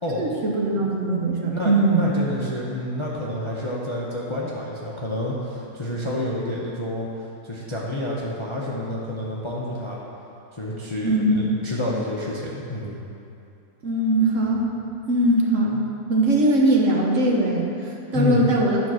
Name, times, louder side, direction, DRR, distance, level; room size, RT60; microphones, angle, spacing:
voice 1, 0.2-2.1 11.0-11.6 13.8-14.7 15.1-18.8, right 1 dB, 55° right, -2 dB, 1.3 m, -21 dB
voice 2, 1.5-7.1 7.4-10.0 10.5-13.0 15.7-15.8 18.1-18.4, left 1 dB, 25° left, -5 dB, 0.7 m, -29 dB
11.0 x 4.1 x 6.2 m, 2.8 s
omnidirectional pair, 1.7 m